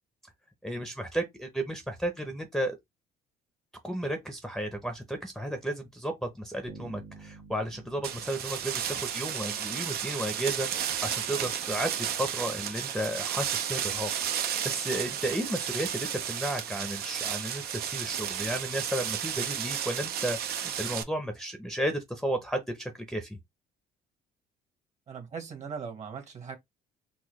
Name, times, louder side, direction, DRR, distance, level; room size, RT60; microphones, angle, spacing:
voice 1, 0.6-2.8 3.8-23.4, right 1 dB, ahead, 0.7 m, -33 dB
Bass guitar, 6.7-9.8, right 4 dB, 85° right, 1.5 m, -50 dB
sound 1, 8.0-21.0, right 9 dB, 65° right, 0.6 m, -33 dB
voice 2, 25.1-26.6, right 6 dB, 45° right, 1.3 m, -39 dB
3.9 x 2.2 x 3.0 m
cardioid pair, 110°, 17 cm